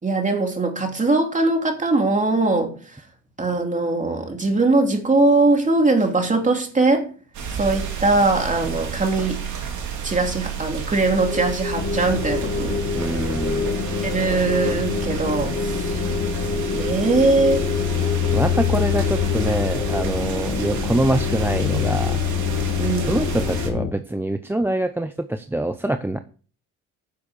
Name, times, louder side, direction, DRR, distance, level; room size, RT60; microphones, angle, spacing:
voice 1, 0.0-2.8 3.4-7.1 7.5-9.5 10.0-13.3 14.0-16.2 16.7-17.6 22.8-23.3, right 3 dB, 25° right, 3 dB, 3.0 m, -21 dB
sound 1, 7.3-23.7, right 7 dB, 70° right, 3.3 m, -30 dB
sound 2, 11.2-20.0, left 4 dB, 20° left, 2.3 m, -31 dB
sound 3, 11.8-23.9, left 9 dB, 60° left, 1.6 m, -26 dB
voice 2, 12.9-13.7 18.3-22.2 23.1-26.2, right 1 dB, 5° right, 9 dB, 0.7 m, -24 dB
10.0 x 7.0 x 6.6 m, 0.40 s
cardioid pair, 90°, 30 cm